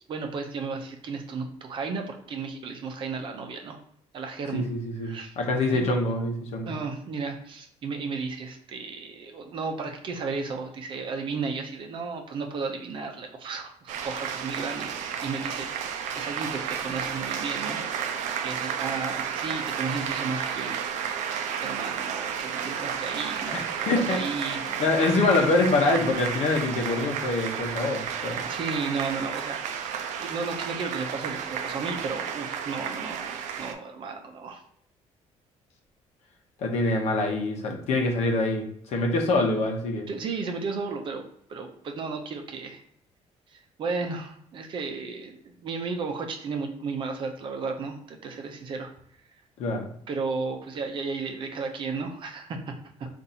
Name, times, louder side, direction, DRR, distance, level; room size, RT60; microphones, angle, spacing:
voice 1, 0.1-3.8 4.1-4.7 5.0-5.3 5.7-5.9 6.7-17.9 18.4-20.8 21.6-24.6 28.4-34.6 40.1-42.8 43.5-48.9 50.1-52.6, right 4 dB, 45° right, 4 dB, 0.7 m, -34 dB
voice 2, 4.5-6.7 23.5-28.4 36.6-40.1 49.6-49.9, left 2 dB, 60° left, 2 dB, 0.9 m, -25 dB
sound 1, 13.9-33.7, right 8 dB, 85° right, 0.5 m, -32 dB
4.1 x 2.6 x 4.0 m, 0.66 s
cardioid pair, 155°, 12 cm